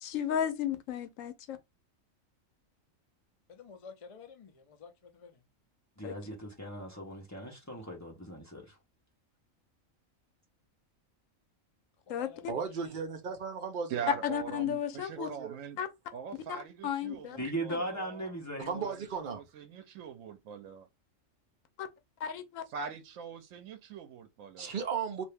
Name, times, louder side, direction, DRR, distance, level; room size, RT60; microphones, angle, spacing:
voice 1, 0.0-1.6 6.0-6.1 12.1-12.5 14.2-15.3 15.8-15.9 16.5-17.4 21.8-21.9 22.2-22.6, left 9 dB, 80° left, 1.0 m, -34 dB
voice 2, 3.5-5.4 12.1-12.7, left 6 dB, 45° left, 0.4 m, -51 dB
voice 3, 6.0-8.8 17.4-18.9, right 1 dB, 15° left, 0.9 m, -38 dB
voice 4, 12.5-14.0 15.2-15.6 18.7-19.4 24.6-25.2, right 6 dB, 50° right, 0.7 m, -35 dB
voice 5, 13.9-15.8 16.1-18.3 18.8-20.9 22.7-24.7, right 7 dB, 75° right, 0.9 m, -42 dB
2.7 x 2.6 x 3.2 m
omnidirectional pair, 1.4 m